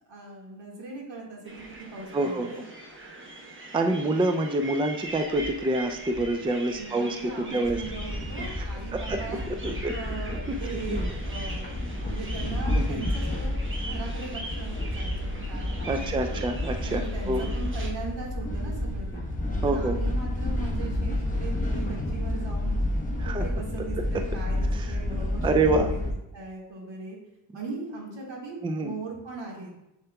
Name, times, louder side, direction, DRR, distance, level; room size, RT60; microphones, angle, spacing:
voice 1, 0.1-1.6 1.9-2.6 6.8-11.7 12.0-13.6 13.9-16.5 16.9-19.2 19.6-22.8 23.2-26.0 26.3-27.2 27.5-29.7, right 3 dB, 80° right, -2 dB, 1.9 m, -39 dB
sound 1, 1.4-17.9, right 1 dB, 30° right, 1.1 m, -41 dB
voice 2, 2.1-2.5 3.7-7.8 8.6-8.7 8.9-9.2 9.6-10.0 10.5-10.6 10.9-11.1 12.7-13.0 15.9-17.5 19.6-20.0 23.2-23.4 24.0-24.1 24.7-24.9 25.4-25.9 28.6-28.9, right 2 dB, 15° right, 6 dB, 0.4 m, -27 dB
sound 2, 7.6-26.1, left 1 dB, 20° left, 1.1 m, -30 dB
7.1 x 6.5 x 2.3 m, 0.89 s
wide cardioid pair, 130°, 43 cm